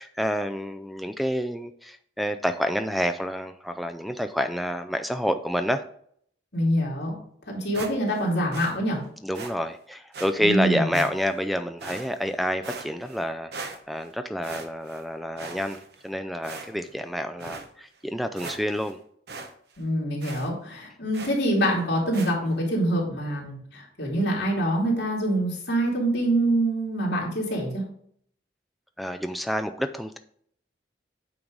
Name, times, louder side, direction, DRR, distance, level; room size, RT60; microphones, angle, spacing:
voice 1, 0.0-5.8 9.2-19.0 29.0-30.2, equal, ahead, 9 dB, 0.3 m, -28 dB
voice 2, 6.5-7.1 7.5-9.0 10.4-11.0 19.8-27.8, right 1 dB, 65° left, -3 dB, 2.8 m, -25 dB
sound 1, 7.7-8.2 8.5-8.8 9.3-9.5 10.1-10.3 10.9-11.4 11.8-12.3 12.6-13.2 13.5-14.1 14.4-15.0 15.4-16.1 16.4-16.9 17.4-17.7 18.1-18.2 18.4-18.9 19.3-19.5 19.8-19.9 20.2-20.5 21.1-21.5 22.1-22.3, right 4 dB, 60° right, 0.9 m, -39 dB
8.7 x 4.7 x 3.9 m, 0.64 s
head